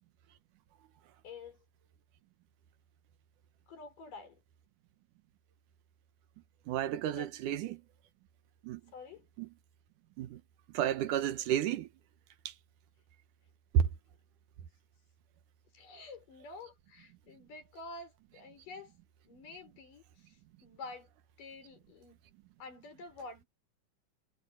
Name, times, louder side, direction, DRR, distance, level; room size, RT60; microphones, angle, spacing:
voice 1, 1.2-1.6 3.7-4.4 7.1-7.3 8.9-9.3 15.7-18.9 19.2-21.1 21.4-22.2 22.6-23.5, left 3 dB, 75° left, 6.6 m, -49 dB
voice 2, 6.7-7.8 8.6-8.8 9.4-9.5 10.2-10.4 10.7-11.9 12.5-12.6 13.7-13.9, right 10 dB, 75° right, 2.6 m, -31 dB
omnidirectional pair, 3.8 m